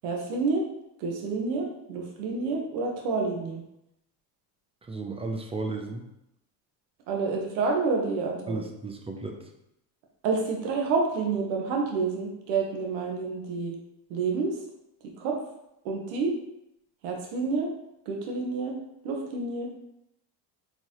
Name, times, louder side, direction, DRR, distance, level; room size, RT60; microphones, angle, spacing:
voice 1, 0.0-0.6 1.0-3.6 7.1-8.6 10.2-13.7 14.1-14.6 15.2-15.4 15.8-16.3 17.0-17.7 18.1-18.7 19.0-19.8, right 4 dB, 80° right, 1 dB, 1.2 m, -28 dB
voice 2, 4.9-6.1 8.5-9.4, right 3 dB, 15° right, 3 dB, 0.5 m, -34 dB
4.1 x 3.9 x 3.0 m, 0.83 s
supercardioid pair, 105°, 48 cm